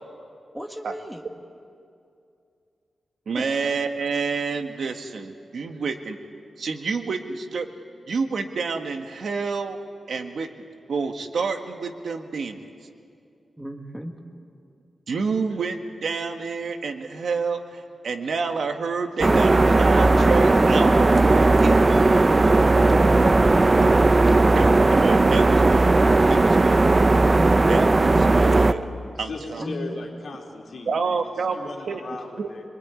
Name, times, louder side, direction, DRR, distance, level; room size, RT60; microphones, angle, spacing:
voice 1, 0.5-1.2 3.3-3.4 13.6-14.1 22.7-23.2 24.2-24.6 29.6-29.9, equal, 5° right, 4 dB, 1.7 m, -34 dB
voice 2, 3.3-6.2 6.6-7.7 8.1-9.8 10.1-10.5 10.9-12.7 15.1-21.9 24.6-25.9 26.3-26.8 27.7-28.9 29.2-29.6 30.9-31.6 31.9-32.0 32.4-32.5, right 5 dB, 65° right, 6 dB, 1.5 m, -28 dB
sound 1, 19.2-28.7, right 2 dB, 25° right, 0.7 m, -17 dB
voice 3, 29.1-31.2 31.5-32.6, left 3 dB, 60° left, 0 dB, 3.8 m, -36 dB
25.5 x 21.5 x 9.7 m, 2.5 s
wide cardioid pair, 145°, 0 cm